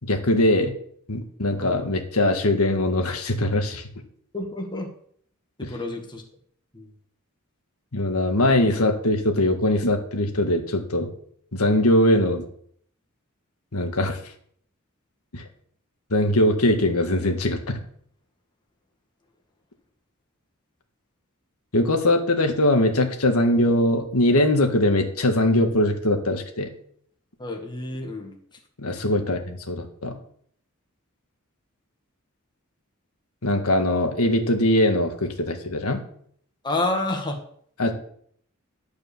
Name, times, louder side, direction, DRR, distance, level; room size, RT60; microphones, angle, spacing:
voice 1, 0.0-0.7 1.1-3.9 5.6-5.7 7.9-11.1 11.5-12.4 13.7-14.3 15.3-15.4 16.1-17.8 21.7-26.7 28.8-30.1 33.4-36.0 37.8-37.9, left 1 dB, 85° left, 5 dB, 1.7 m, -21 dB
voice 2, 4.3-4.9 5.6-6.2 6.7-6.9 27.4-28.4 36.6-37.4, left 2 dB, 20° left, 2 dB, 1.6 m, -29 dB
12.0 x 5.2 x 6.9 m, 0.62 s
head